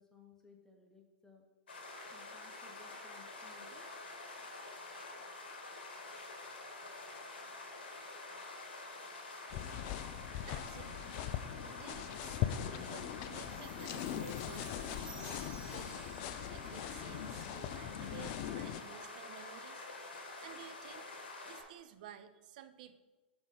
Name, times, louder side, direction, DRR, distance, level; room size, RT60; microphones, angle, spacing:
voice 1, 0.0-1.4 2.1-3.9, left 4 dB, 10° left, 1 dB, 0.9 m, -61 dB
sound 1, 1.7-21.6, left 3 dB, 70° left, 1.8 m, -48 dB
sound 2, 9.5-18.8, left 11 dB, 40° left, 0.4 m, -41 dB
voice 2, 10.5-11.2 11.8-16.1 16.5-19.9 20.4-21.1 21.4-23.0, right 9 dB, 50° right, 10 dB, 0.6 m, -54 dB
Chime, 13.3-17.8, right 4 dB, 35° right, 1.9 m, -57 dB
7.0 x 5.3 x 4.0 m, 1.2 s
figure-of-eight pair, 105°, 6 cm